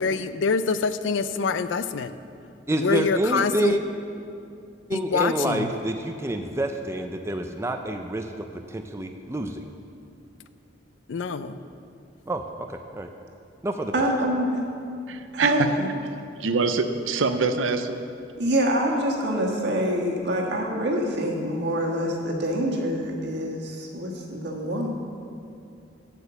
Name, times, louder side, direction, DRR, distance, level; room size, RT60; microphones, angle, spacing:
voice 1, 0.0-2.1 2.8-3.8 4.9-5.7 11.1-11.6, left 5 dB, 80° left, 13 dB, 0.4 m, -25 dB
voice 2, 2.7-3.8 4.9-9.6 12.3-13.1 13.6-13.9, right 1 dB, 15° right, 5 dB, 0.4 m, -28 dB
voice 3, 13.9-14.6 15.3-15.9 18.4-24.9, equal, 60° right, -1 dB, 1.5 m, -25 dB
voice 4, 15.1-15.7 16.4-18.0, right 4 dB, 85° right, 9 dB, 0.6 m, -24 dB
8.3 x 7.0 x 6.8 m, 2.5 s
head